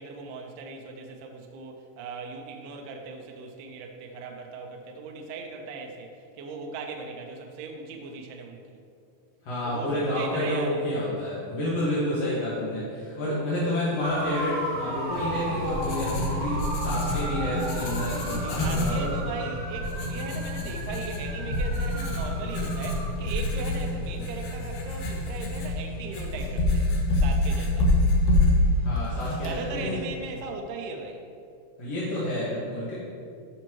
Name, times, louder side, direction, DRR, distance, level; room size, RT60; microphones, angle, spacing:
voice 1, 0.0-8.8 9.6-11.2 12.0-12.1 18.4-26.9 27.2-27.9 29.4-31.2, right 4 dB, 75° right, 2 dB, 2.6 m, -38 dB
voice 2, 9.4-19.1 28.8-30.0 31.8-32.9, left 1 dB, 55° left, -9 dB, 2.0 m, -29 dB
sound 1, 14.0-23.1, right 1 dB, 55° right, 1.5 m, -35 dB
sound 2, 15.1-25.6, left 2 dB, 90° left, 2.0 m, -40 dB
Writing, 15.3-30.1, left 1 dB, 70° left, 2.4 m, -27 dB
15.0 x 5.8 x 3.0 m, 2.4 s
omnidirectional pair, 5.1 m